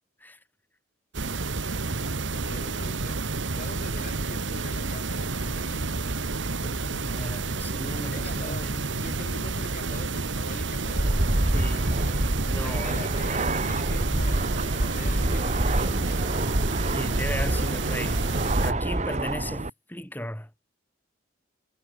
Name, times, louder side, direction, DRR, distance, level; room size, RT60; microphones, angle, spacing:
sound 1, 1.1-18.7, right 3 dB, 70° right, 1.4 m, -30 dB
voice 1, 2.3-3.3 3.6-5.9 6.4-7.5 8.1-12.2 12.6-16.3, left 2 dB, 45° left, 2.9 m, -44 dB
voice 2, 7.0-8.8 11.5-11.9 12.5-13.4 16.9-18.2 18.6-20.5, left 1 dB, 10° left, 3.6 m, -36 dB
Fixed-wing aircraft airplane, 10.8-19.7, right 1 dB, 35° right, 1.8 m, -27 dB
head